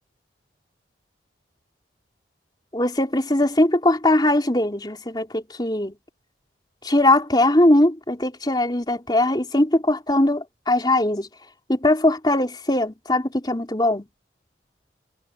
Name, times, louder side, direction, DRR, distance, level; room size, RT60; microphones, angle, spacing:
voice 1, 2.7-5.9 6.8-11.3 11.7-14.0, left 1 dB, 25° left, 3.7 m, -20 dB
head